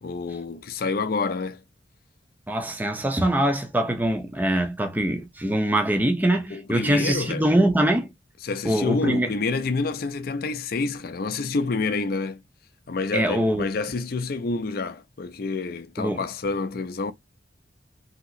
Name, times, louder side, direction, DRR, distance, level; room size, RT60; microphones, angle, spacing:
voice 1, 0.0-1.6 6.5-7.4 8.4-12.4 12.9-17.1, left 4 dB, 50° left, 0.4 m, -28 dB
voice 2, 2.5-8.1 8.6-9.3 13.1-13.7 16.0-16.2, right 1 dB, 10° right, 0.5 m, -23 dB
2.9 x 2.8 x 2.5 m
head